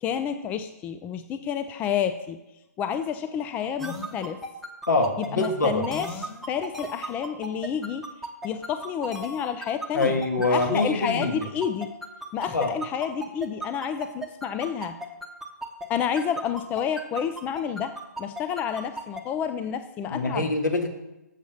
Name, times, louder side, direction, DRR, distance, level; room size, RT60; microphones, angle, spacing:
voice 1, 0.0-2.4 2.8-4.4 5.2-8.1 8.4-10.2 10.5-11.9 12.3-15.0 15.9-20.5, left 8 dB, 15° left, 10 dB, 0.4 m, -29 dB
sound 1, 3.8-15.9 16.2-19.2, right 1 dB, ahead, 0.9 m, -35 dB
voice 2, 4.9-5.8 9.9-11.4 12.5-12.7 20.1-20.9, left 2 dB, 75° left, 4 dB, 2.0 m, -24 dB
7.3 x 7.1 x 6.3 m, 0.97 s
figure-of-eight pair, 130°, 10 cm